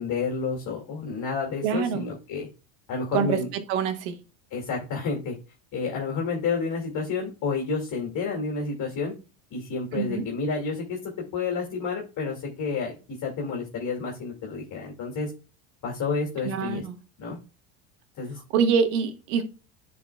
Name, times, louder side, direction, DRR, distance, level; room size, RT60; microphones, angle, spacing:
voice 1, 0.0-2.5 2.9-3.5 4.5-5.4 5.7-9.1 9.5-13.0 13.2-15.3 15.8-16.8 17.2-17.4 18.2-18.4, left 4 dB, 45° left, 2.3 m, -30 dB
voice 2, 1.6-2.1 3.1-4.2 9.9-10.2 16.4-17.0 18.5-19.4, right 6 dB, 70° right, 1.4 m, -25 dB
11.0 x 4.2 x 2.2 m
supercardioid pair, 100°, 43 cm